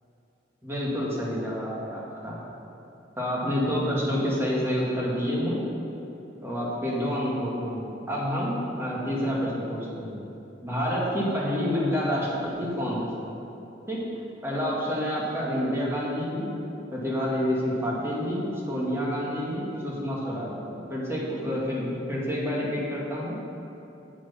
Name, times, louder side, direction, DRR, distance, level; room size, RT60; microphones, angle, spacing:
voice 1, 0.6-2.4 3.2-5.6 6.4-10.2 10.6-13.4 13.9-14.0 14.4-16.5 16.9-23.4, equal, 15° right, -5 dB, 1.8 m, -28 dB
8.0 x 7.5 x 5.6 m, 3.0 s
head